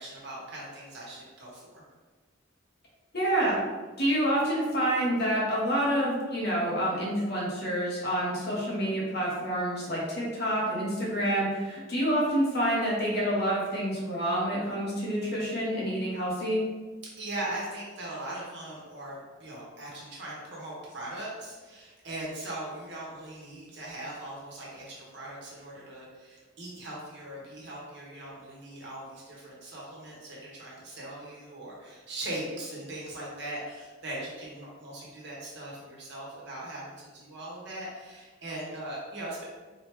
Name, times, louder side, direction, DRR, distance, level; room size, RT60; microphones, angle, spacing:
voice 1, 0.0-1.8 17.2-39.4, right 1 dB, 60° right, -5 dB, 1.3 m, -40 dB
voice 2, 3.1-3.6 4.0-16.6, right 1 dB, 55° left, -5 dB, 1.2 m, -28 dB
3.9 x 3.0 x 3.5 m, 1.3 s
head